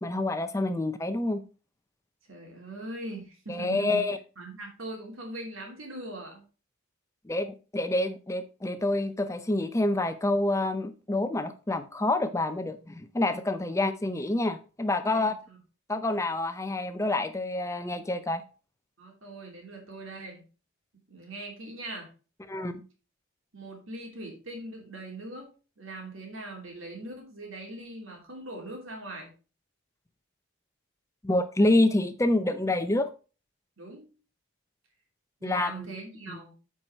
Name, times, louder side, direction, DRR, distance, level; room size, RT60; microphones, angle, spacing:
voice 1, 0.0-1.4 3.5-4.2 7.3-15.4 15.9-18.4 22.5-22.8 31.2-33.1 35.4-35.7, left 2 dB, 15° left, 0.5 m, -27 dB
voice 2, 2.3-4.1 4.4-6.4 14.9-15.6 19.0-20.5 21.1-22.1 23.5-25.5 25.8-29.3 33.8-34.1 35.4-36.6, right 2 dB, 70° right, 2.8 m, -41 dB
8.8 x 4.7 x 4.3 m
head